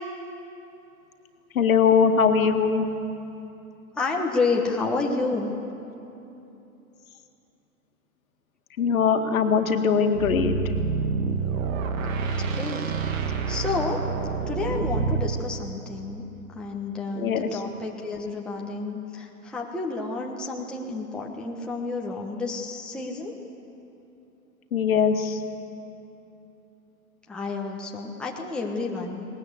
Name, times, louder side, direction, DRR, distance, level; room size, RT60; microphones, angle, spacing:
voice 1, 1.6-2.9 8.8-10.6 17.2-17.5 24.7-25.4, left 6 dB, 65° left, 5 dB, 2.0 m, -21 dB
voice 2, 3.9-5.5 12.5-12.8 13.5-14.0 14.5-16.2 16.5-23.3 27.3-29.3, left 3 dB, ahead, -2 dB, 1.2 m, -30 dB
sound 1, 10.1-15.4, right 5 dB, 55° right, 2.1 m, -27 dB
20.0 x 19.5 x 8.2 m, 2.9 s
hypercardioid pair, 135°, 45 cm